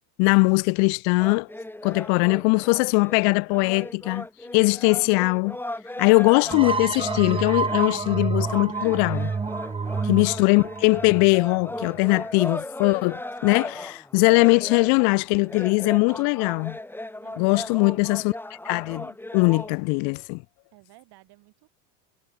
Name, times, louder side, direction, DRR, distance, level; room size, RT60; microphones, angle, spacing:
voice 1, 0.2-1.5 1.8-4.3 4.5-5.6 6.0-9.3 10.1-16.8 17.4-18.3 18.6-20.4, left 38 dB, 50° left, 0.5 m, -21 dB
sound 1, 1.2-19.7, left 1 dB, 5° left, 2.0 m, -37 dB
sound 2, 6.5-12.0, right 5 dB, 10° right, 0.7 m, -29 dB
voice 2, 9.6-10.4 12.1-12.9 17.2-18.0 20.7-21.7, right 18 dB, 50° right, 3.7 m, -56 dB
hypercardioid pair, 100°, 50 cm